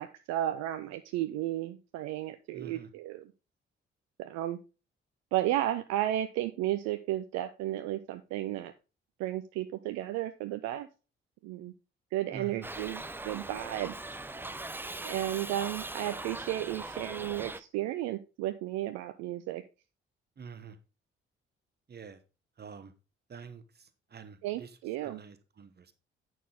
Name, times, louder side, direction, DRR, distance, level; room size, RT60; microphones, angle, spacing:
voice 1, 0.0-3.2 4.2-4.6 5.3-8.7 9.2-10.9 11.4-11.7 12.1-13.9 15.0-19.6 24.4-25.2, right 14 dB, 60° right, 9 dB, 0.6 m, -33 dB
voice 2, 2.5-2.9 12.3-12.7 20.4-20.8 21.9-22.2 22.6-22.9 23.3-25.9, right 6 dB, 30° right, 11 dB, 1.2 m, -47 dB
Shout / Livestock farm animals working animals, 12.6-17.6, right 2 dB, 5° right, 0.5 m, -40 dB
9.1 x 6.3 x 4.0 m, 0.31 s
figure-of-eight pair, 40°, 30 cm